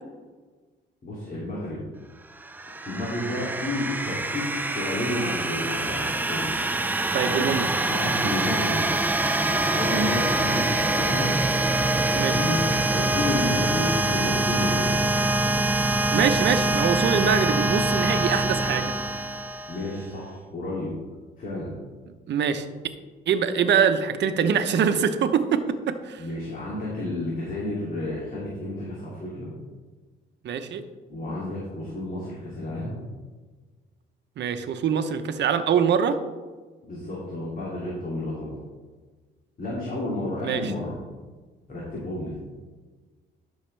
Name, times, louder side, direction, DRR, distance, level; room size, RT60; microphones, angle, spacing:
voice 1, 1.0-1.8 2.8-6.6 7.2-8.8 9.5-11.4 11.9-12.6 12.9-15.0 19.7-20.9 21.4-21.7 26.2-29.5 31.1-33.0 36.9-38.6 39.6-41.0 41.7-42.3, left 1 dB, 45° left, -6 dB, 2.6 m, -31 dB
sound 1, 2.4-20.0, right 2 dB, 10° right, 0.5 m, -25 dB
voice 2, 7.1-7.7 12.1-12.4 16.1-18.9 22.3-22.6 23.3-25.6 26.0-26.2 30.4-30.8 34.4-36.2 40.4-40.7, right 7 dB, 65° right, 9 dB, 0.8 m, -23 dB
12.0 x 6.4 x 3.3 m, 1.4 s
cardioid pair, 90°, 20 cm